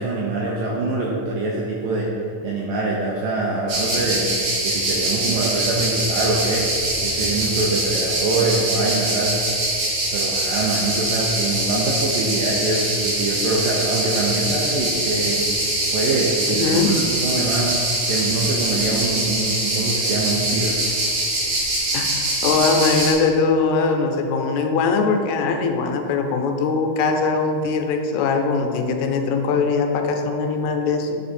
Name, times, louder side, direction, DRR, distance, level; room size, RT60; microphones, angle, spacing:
voice 1, 0.0-9.3 10.1-15.5 15.9-21.0, right 2 dB, 85° right, -3 dB, 1.9 m, -24 dB
sound 1, 3.7-23.1, right 1 dB, 55° right, 1.9 m, -23 dB
voice 2, 16.5-16.9 21.9-31.2, left 4 dB, 85° left, 4 dB, 2.6 m, -21 dB
9.7 x 3.9 x 4.2 m, 2.6 s
omnidirectional pair, 4.5 m